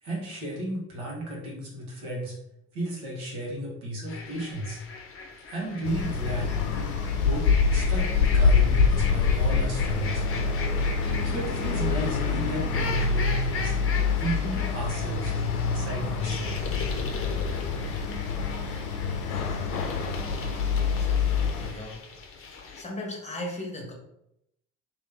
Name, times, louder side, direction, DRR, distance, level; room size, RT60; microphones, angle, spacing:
voice 1, 0.0-2.3 2.7-4.8 5.5-10.2 11.2-13.7 14.2-15.3 15.7-16.5, right 1 dB, 75° right, -3 dB, 1.4 m, -33 dB
sound 1, 4.1-22.8, left 5 dB, 30° left, 0.7 m, -38 dB
sound 2, 5.8-21.7, left 5 dB, 80° left, 0.6 m, -26 dB
voice 2, 20.9-22.1 22.7-23.9, left 1 dB, 15° left, 0 dB, 1.1 m, -37 dB
3.2 x 3.0 x 3.4 m, 0.81 s
figure-of-eight pair, 50°, 44 cm